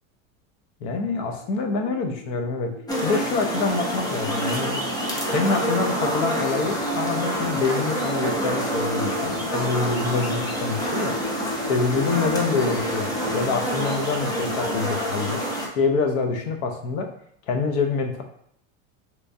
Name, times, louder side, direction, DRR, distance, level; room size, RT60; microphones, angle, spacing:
voice 1, 0.8-2.7 3.0-4.8 5.3-11.2 11.7-15.4 15.8-17.1 17.5-18.2, left 4 dB, 60° left, 4 dB, 0.8 m, -26 dB
sound 1, 1.1-13.4, left 2 dB, 30° left, 1.1 m, -38 dB
sound 2, 2.9-15.7, equal, 10° left, 0.4 m, -27 dB
3.4 x 3.0 x 2.6 m, 0.72 s
supercardioid pair, 140°, 39 cm